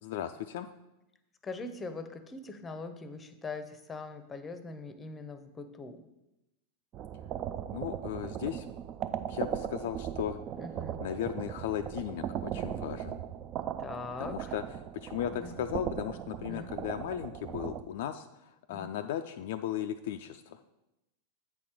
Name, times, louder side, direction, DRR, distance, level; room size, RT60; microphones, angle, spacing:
voice 1, 0.0-0.7 7.7-8.7 9.3-10.4 11.0-13.2 14.2-20.6, left 10 dB, 55° left, 7 dB, 0.3 m, -36 dB
voice 2, 1.4-6.0 10.6-11.0 13.8-14.5 15.3-15.5 16.4-16.7 18.7-18.9, left 3 dB, 15° left, 11 dB, 0.6 m, -42 dB
sound 1, 6.9-17.8, right 9 dB, 35° right, 0.3 m, -38 dB
8.4 x 4.2 x 4.8 m, 0.92 s
figure-of-eight pair, 90°, 0 cm